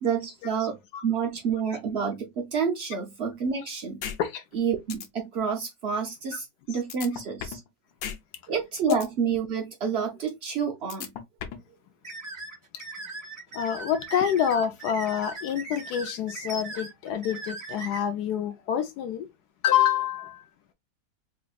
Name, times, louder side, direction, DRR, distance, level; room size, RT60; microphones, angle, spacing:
voice 1, 0.0-0.8 1.0-4.0 4.5-7.6 8.5-11.1, right 6 dB, 75° right, 0.5 m, -29 dB
sound 1, 4.0-4.2 4.5-4.6 4.9-5.1 6.9-7.7 8.0-8.2 8.5-9.1 10.9-11.7, left 8 dB, 85° left, 1.5 m, -35 dB
sound 2, 12.0-18.0, right 3 dB, 15° right, 2.2 m, -39 dB
voice 2, 13.5-19.3 19.6-20.5, left 9 dB, 70° left, 1.0 m, -27 dB
4.2 x 2.8 x 2.3 m
omnidirectional pair, 2.0 m